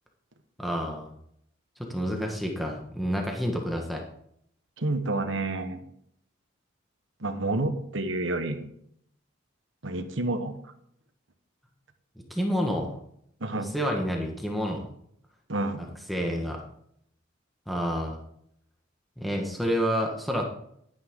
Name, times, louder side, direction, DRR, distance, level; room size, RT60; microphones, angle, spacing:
voice 1, 0.6-1.1 1.8-4.0 12.3-12.9 13.5-14.9 16.1-16.6 17.7-18.2 19.2-20.4, equal, ahead, 0 dB, 1.4 m, -29 dB
voice 2, 4.8-5.8 7.2-8.7 9.8-10.5 13.4-13.7 15.5-15.8, right 2 dB, 70° right, 7 dB, 1.3 m, -29 dB
11.5 x 9.7 x 3.8 m, 0.71 s
head